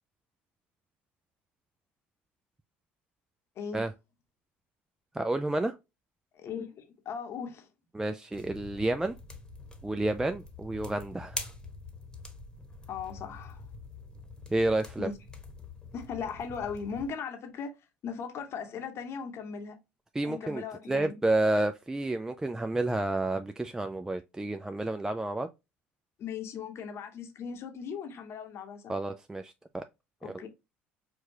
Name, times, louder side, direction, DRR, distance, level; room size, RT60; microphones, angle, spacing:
voice 1, 5.1-5.8 7.9-9.2 9.8-11.5 14.5-15.1 20.1-25.5 28.9-29.8 30.2-30.4, right 2 dB, 10° right, 0.3 m, -30 dB
voice 2, 6.3-7.7 12.9-13.6 15.0-15.2 15.9-17.7 18.0-19.7 20.2-21.2 26.2-28.8 30.2-30.5, left 6 dB, 50° left, 0.9 m, -38 dB
sound 1, 8.3-17.1, left 3 dB, 15° left, 1.1 m, -45 dB
4.6 x 2.3 x 2.7 m
hypercardioid pair, 70°, 6 cm